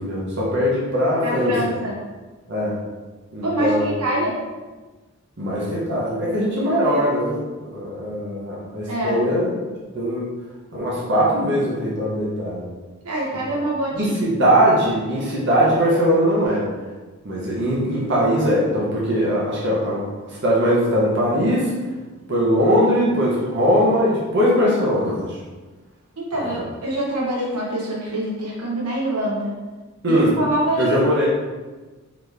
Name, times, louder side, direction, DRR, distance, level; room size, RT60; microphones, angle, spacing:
voice 1, 0.0-1.7 2.5-2.7 3.3-3.9 5.4-9.6 9.9-10.3 10.7-12.6 13.9-16.7 17.2-20.0 20.4-21.7 22.3-25.2 26.4-26.5 30.0-30.3 30.8-31.3, equal, 50° right, -5 dB, 0.8 m, -20 dB
voice 2, 1.2-2.0 3.4-4.4 8.9-9.2 13.0-14.3 26.2-29.5 30.1-30.9, right 1 dB, 90° right, -4 dB, 1.1 m, -25 dB
4.1 x 2.9 x 3.3 m, 1.3 s
head